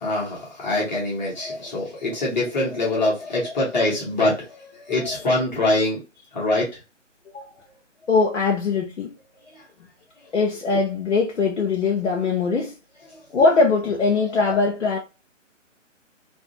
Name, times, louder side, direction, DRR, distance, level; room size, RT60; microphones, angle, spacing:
voice 1, 0.0-6.0 6.3-6.7 14.5-14.6, left 2 dB, 35° left, 1.1 m, -24 dB
voice 2, 8.1-9.1 10.3-12.7 13.3-15.0, left 4 dB, 70° left, 0.7 m, -21 dB
2.5 x 2.4 x 2.7 m
figure-of-eight pair, 140°, 38 cm